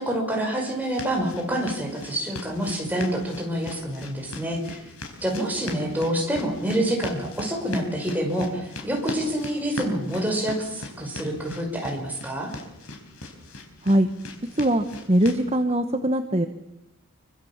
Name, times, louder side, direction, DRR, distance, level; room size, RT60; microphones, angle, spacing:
voice 1, 0.0-4.8 5.2-12.5, right 1 dB, 10° right, 0 dB, 5.6 m, -27 dB
sound 1, 0.8-15.4, left 2 dB, 80° left, 4.7 m, -39 dB
voice 2, 14.5-16.5, right 1 dB, 30° right, 7 dB, 1.2 m, -21 dB
26.5 x 24.5 x 7.3 m, 0.84 s
head